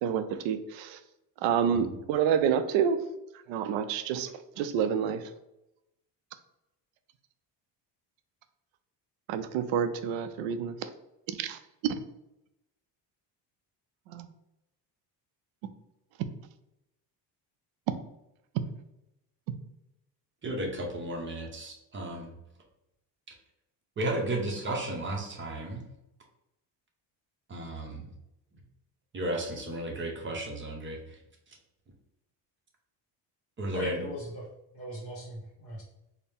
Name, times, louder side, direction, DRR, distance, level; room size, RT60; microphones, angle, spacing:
voice 1, 0.0-1.0 1.4-3.0 3.5-4.3 4.6-5.2 9.3-10.9 11.4-11.9 14.1-14.3, right 8 dB, 90° right, 10 dB, 0.5 m, -28 dB
voice 2, 20.4-22.3 24.0-25.8 27.5-28.1 29.1-31.0 33.6-34.0, right 1 dB, 25° right, 1 dB, 0.7 m, -33 dB
voice 3, 33.7-34.4 34.7-35.8, equal, 35° left, -6 dB, 1.2 m, -38 dB
4.3 x 2.1 x 3.5 m, 0.87 s
cardioid pair, 135°, 44 cm